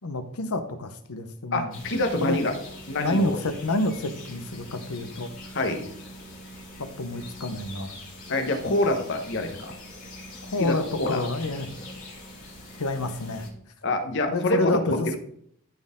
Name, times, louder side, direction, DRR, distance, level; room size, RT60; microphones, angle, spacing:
voice 1, 0.0-1.8 2.2-2.4 3.0-5.3 6.8-7.9 10.5-11.7 12.8-13.5 14.3-15.2, left 2 dB, 80° left, 10 dB, 0.9 m, -28 dB
voice 2, 1.5-2.5 2.9-3.4 5.5-5.9 8.3-9.7 10.6-11.2 13.8-15.0, left 1 dB, 55° left, 5 dB, 1.2 m, -26 dB
sound 1, 1.7-13.5, left 1 dB, 35° left, 2.9 m, -43 dB
13.0 x 4.4 x 3.7 m, 0.68 s
head